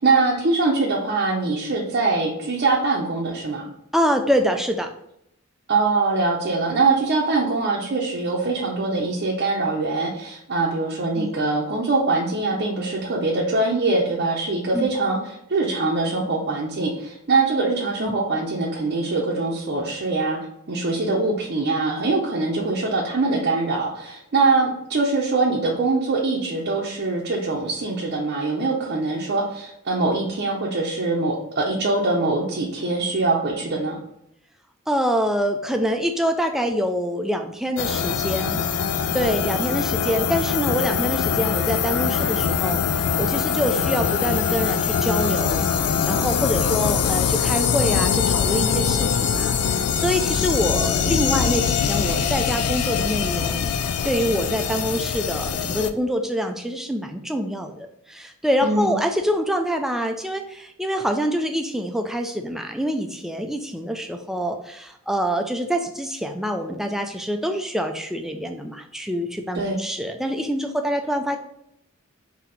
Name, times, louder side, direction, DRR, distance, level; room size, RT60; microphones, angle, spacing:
voice 1, 0.0-3.7 5.7-20.4 20.7-34.0 58.6-58.9 69.5-69.8, right 3 dB, 50° right, -3 dB, 0.6 m, -23 dB
voice 2, 3.9-4.9 11.2-11.3 14.7-14.9 18.0-18.1 34.9-38.6 39.1-45.7 46.1-71.4, equal, ahead, 5 dB, 0.3 m, -25 dB
sound 1, 37.8-55.9, left 7 dB, 90° left, 0.4 m, -23 dB
4.2 x 2.7 x 3.9 m, 0.78 s
head